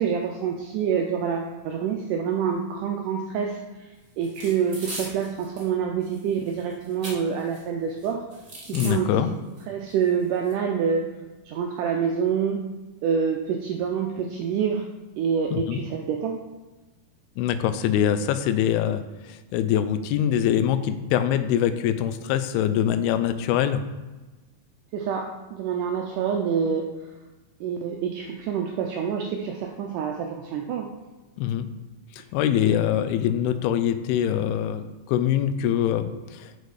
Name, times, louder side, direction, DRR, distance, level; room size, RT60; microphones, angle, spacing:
voice 1, 0.0-3.6 4.2-8.3 8.7-9.1 9.7-11.1 11.5-12.6 13.0-14.9 15.2-16.4 24.9-26.9 27.6-30.9, right 7 dB, 80° right, 2 dB, 1.8 m, -26 dB
sound 1, 4.2-5.7 6.0-7.6 8.0-8.9 9.6-9.7 9.9-10.5, right 1 dB, 50° right, 0.8 m, -39 dB
voice 2, 8.7-9.3 15.5-15.8 17.4-23.8 31.4-31.7 32.3-36.0 36.3-36.5, left 10 dB, 90° left, 11 dB, 2.5 m, -24 dB
6.7 x 6.3 x 4.8 m, 1.2 s
omnidirectional pair, 4.3 m